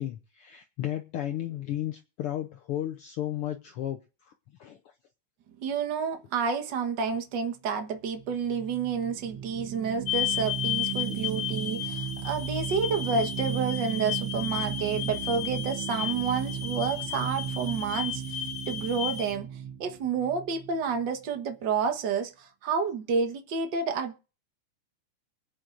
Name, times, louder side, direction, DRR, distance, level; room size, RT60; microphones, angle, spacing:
voice 1, 0.0-4.3 4.6-4.8 11.2-11.3, left 12 dB, 90° left, 1.2 m, -34 dB
voice 2, 5.6-19.5 19.8-24.2, right 5 dB, 50° right, 1.4 m, -30 dB
sound 1, 8.1-21.3, right 10 dB, 70° right, 1.5 m, -36 dB
sound 2, 10.1-19.3, left 12 dB, 55° left, 2.9 m, -34 dB
24.0 x 9.3 x 2.6 m
omnidirectional pair, 3.6 m